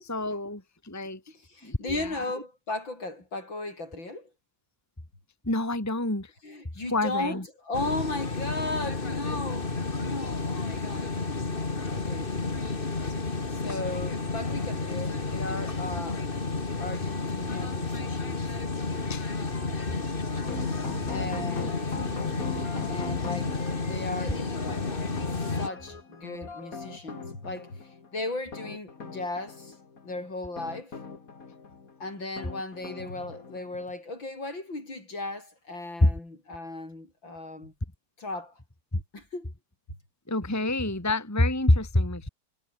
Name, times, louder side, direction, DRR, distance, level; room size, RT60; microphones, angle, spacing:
voice 1, 0.0-1.2 1.6-2.2 5.4-6.3 6.9-7.4 19.0-19.3 36.0-36.1 40.3-42.3, left 1 dB, 10° left, 2.2 m, -26 dB
voice 2, 1.3-4.3 6.4-11.4 11.9-12.3 13.5-16.2 16.8-18.6 21.1-22.2 22.9-23.5 23.8-24.4 25.2-29.8 30.0-31.0 32.0-37.7 38.2-38.6 39.1-39.5, left 2 dB, 60° left, 8.4 m, -36 dB
sound 1, 7.7-25.7, left 3 dB, 25° left, 2.1 m, -31 dB
sound 2, 20.4-33.9, left 4 dB, 40° left, 2.7 m, -40 dB
omnidirectional pair, 2.4 m